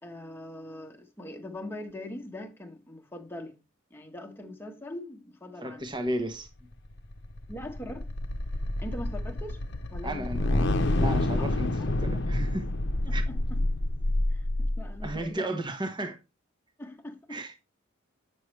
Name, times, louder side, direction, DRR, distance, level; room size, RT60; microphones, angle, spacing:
voice 1, 0.0-3.5 3.9-5.9 7.5-8.1 8.8-9.6 9.9-10.3 11.3-11.9 13.1-13.6 14.3-15.6 16.8-17.4, left 1 dB, 10° left, 1.2 m, -41 dB
voice 2, 5.6-6.5 10.0-12.7 13.1-13.2 15.0-16.2 17.3-17.5, right 1 dB, 20° right, 1.0 m, -34 dB
sound 1, 6.8-15.2, left 1 dB, 55° left, 0.8 m, -28 dB
8.7 x 6.3 x 3.2 m
head